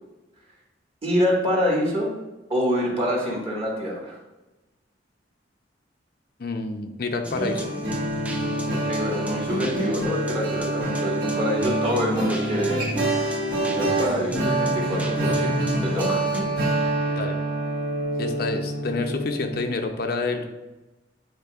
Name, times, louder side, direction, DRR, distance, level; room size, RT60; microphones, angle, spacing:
voice 1, 1.0-2.1 2.5-4.2 8.7-12.8 13.6-16.3, equal, 30° right, -4 dB, 1.7 m, -26 dB
voice 2, 6.4-7.6 17.1-17.4 18.2-20.5, left 3 dB, 55° left, 4 dB, 0.6 m, -28 dB
sound 1, 7.2-16.4, left 1 dB, 5° right, 0.5 m, -34 dB
sound 2, 7.3-19.6, right 2 dB, 55° right, 1.8 m, -26 dB
9.5 x 4.1 x 2.4 m, 1.1 s
head